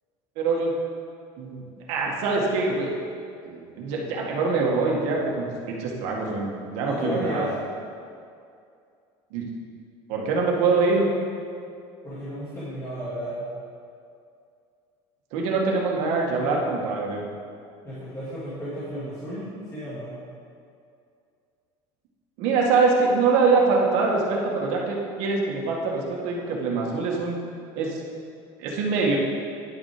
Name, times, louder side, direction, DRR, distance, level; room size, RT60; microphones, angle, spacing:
voice 1, 0.4-0.7 1.4-2.9 3.4-7.5 9.3-9.5 10.1-11.1 15.3-17.2 22.4-27.4 27.8-28.0 28.6-29.2, right 4 dB, 65° right, -1 dB, 2.0 m, -24 dB
voice 2, 6.8-7.5 12.0-13.4 17.8-20.2, equal, 25° left, -12 dB, 2.8 m, -33 dB
10.5 x 7.5 x 5.1 m, 2.4 s
cardioid pair, 160°, 12 cm